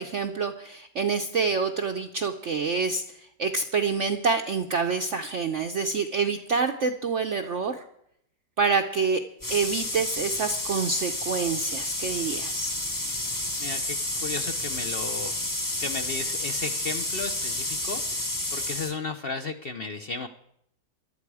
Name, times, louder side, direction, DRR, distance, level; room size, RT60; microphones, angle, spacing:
voice 1, 0.0-3.0 3.4-7.8 8.6-9.2 9.5-12.7, right 4 dB, 55° right, 4 dB, 0.9 m, -27 dB
sound 1, 9.4-18.9, left 1 dB, 15° left, 0.8 m, -30 dB
voice 2, 13.6-15.4 15.8-18.0 18.5-20.3, left 3 dB, 50° left, 7 dB, 0.7 m, -34 dB
18.0 x 12.0 x 4.8 m, 0.74 s
omnidirectional pair, 1.9 m